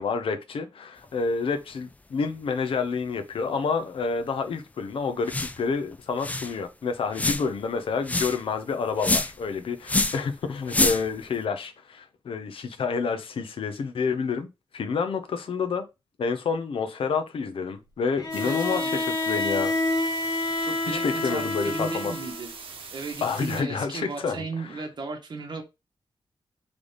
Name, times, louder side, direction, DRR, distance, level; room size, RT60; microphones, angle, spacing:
voice 1, 0.0-15.8 16.2-19.7 20.9-22.1 23.2-24.4, left 5 dB, 85° left, 0.7 m, -29 dB
sound 1, 5.3-5.6 5.9-6.0 6.2-6.5 7.1-7.6 8.0-8.4 9.0-9.4 9.8-10.2 10.7-11.2, left 2 dB, 15° left, 0.3 m, -26 dB
Bowed string instrument, 18.2-22.5, left 2 dB, 45° left, 1.2 m, -28 dB
sound 2, 18.3-23.6, right 5 dB, 85° right, 0.9 m, -42 dB
voice 2, 18.4-19.0 20.6-22.5 22.9-25.6, right 4 dB, 55° right, 1.3 m, -35 dB
3.9 x 3.4 x 3.3 m
wide cardioid pair, 150°, 9 cm